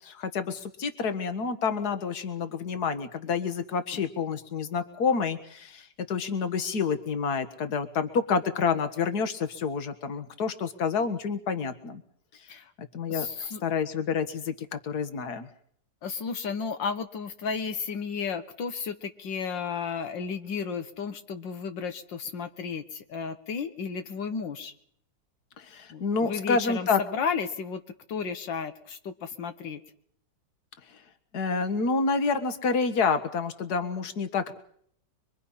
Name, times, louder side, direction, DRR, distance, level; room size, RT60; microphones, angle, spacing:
voice 1, 0.0-12.0 12.5-15.5 25.6-27.0 31.3-34.6, left 5 dB, 60° left, 9 dB, 2.1 m, -28 dB
voice 2, 13.1-13.6 16.0-24.7 25.9-27.8 28.1-29.8, left 6 dB, 80° left, 8 dB, 1.9 m, -33 dB
25.5 x 23.5 x 5.7 m, 0.66 s
omnidirectional pair, 2.0 m